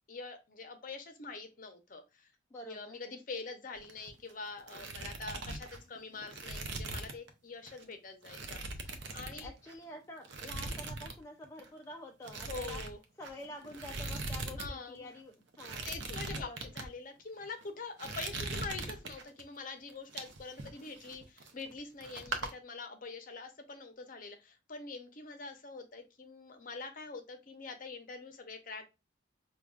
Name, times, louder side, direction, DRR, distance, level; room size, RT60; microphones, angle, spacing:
voice 1, 0.1-2.3 2.6-9.5 12.5-13.0 14.6-15.1 15.9-28.9, left 4 dB, 45° left, 0.6 m, -45 dB
voice 2, 2.5-3.0 9.4-12.8 13.2-15.9 16.4-16.6, left 1 dB, 15° left, 0.3 m, -48 dB
sound 1, 3.8-4.3 4.6-7.3 7.7-7.8 8.2-9.8 10.2-11.2 11.4-11.7 12.2-14.7 14.9-15.0 15.5-16.9 17.4-17.7 18.0-19.4 19.9-21.8 22.0-22.5, right 3 dB, 65° right, 0.6 m, -41 dB
5.1 x 2.3 x 2.3 m
head